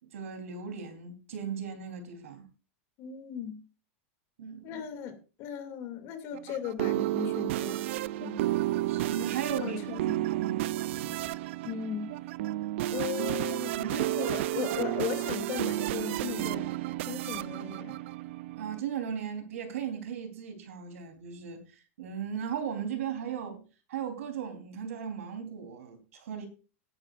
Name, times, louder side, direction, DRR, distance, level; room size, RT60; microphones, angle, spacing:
voice 1, 0.0-2.5 4.4-4.8 8.9-9.8 10.3-11.1 13.7-14.7 18.5-23.6 23.9-26.5, right 8 dB, 80° right, 3.9 m, -37 dB
voice 2, 3.0-3.7 4.6-7.9 8.2-8.5 9.6-10.2 11.6-12.2 12.9-16.7 17.0-18.0, left 8 dB, 40° left, 2.6 m, -37 dB
sound 1, 6.3-18.8, right 15 dB, 60° right, 0.5 m, -32 dB
18.0 x 10.5 x 2.6 m
supercardioid pair, 155°, 7 cm